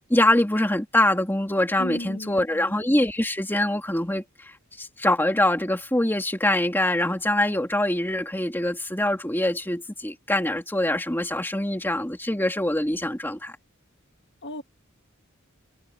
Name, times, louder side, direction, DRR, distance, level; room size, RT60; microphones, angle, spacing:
voice 1, 0.1-4.2 4.8-13.5, left 1 dB, 10° left, 2.5 m, -24 dB
voice 2, 1.8-2.8 14.4-14.6, left 1 dB, 55° left, 2.3 m, -35 dB
head